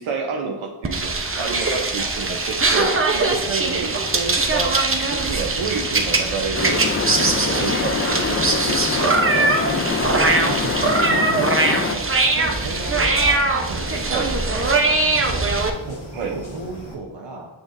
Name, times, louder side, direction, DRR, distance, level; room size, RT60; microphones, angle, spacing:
voice 1, 0.0-6.9 7.1-10.0 14.1-14.3 16.1-16.3, right 5 dB, 85° right, 1 dB, 0.8 m, -29 dB
sound 1, 0.8-15.7, right 3 dB, 25° right, 0.8 m, -21 dB
sound 2, 1.3-17.0, equal, 90° left, 1.4 m, -38 dB
sound 3, 6.5-12.0, left 5 dB, 30° left, 0.4 m, -25 dB
voice 2, 10.4-12.1 12.3-15.5 15.8-17.5, right 3 dB, 60° right, -1 dB, 1.0 m, -34 dB
7.1 x 6.2 x 2.6 m, 1.1 s
wide cardioid pair, 65°, 48 cm